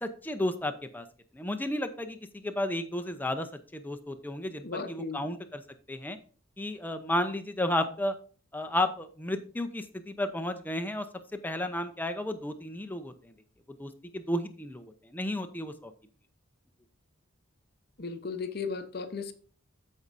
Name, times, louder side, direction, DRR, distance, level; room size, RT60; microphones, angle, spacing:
voice 1, 0.0-1.0 1.3-3.5 3.7-5.6 5.9-6.2 6.6-8.2 8.5-11.1 11.4-13.3 13.8-15.9, left 1 dB, 10° left, 8 dB, 0.6 m, -33 dB
voice 2, 4.6-5.3 18.0-19.3, left 4 dB, 50° left, 8 dB, 0.8 m, -36 dB
14.5 x 5.4 x 2.6 m, 0.41 s
head